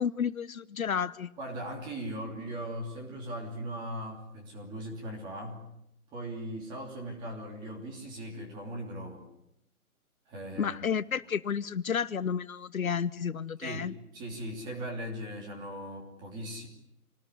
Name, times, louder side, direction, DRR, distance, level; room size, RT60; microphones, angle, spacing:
voice 1, 0.0-1.3 10.6-13.9, left 7 dB, 65° left, 16 dB, 0.9 m, -31 dB
voice 2, 1.4-5.6 6.1-9.2 10.3-10.9 13.6-16.7, right 1 dB, 10° right, 0 dB, 3.0 m, -39 dB
27.0 x 19.5 x 9.8 m, 0.81 s
hypercardioid pair, 165°, 44 cm